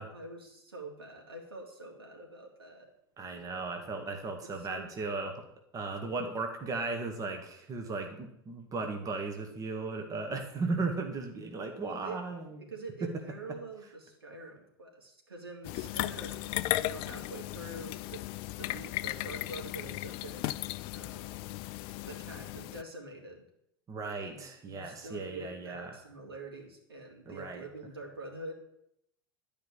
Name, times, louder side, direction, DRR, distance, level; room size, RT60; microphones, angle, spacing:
voice 1, 0.0-2.9 4.4-4.9 11.8-12.2 12.6-18.3 18.6-20.6 20.9-21.5 22.0-23.4 24.2-28.5, right 2 dB, 80° right, 0 dB, 3.3 m, -46 dB
voice 2, 3.2-5.4 5.7-12.7 23.9-26.0 27.3-27.6, right 3 dB, 25° right, 4 dB, 2.1 m, -36 dB
sound 1, 15.6-22.8, left 17 dB, 45° left, 0.5 m, -36 dB
13.0 x 5.2 x 9.0 m, 0.76 s
figure-of-eight pair, 80°, 12 cm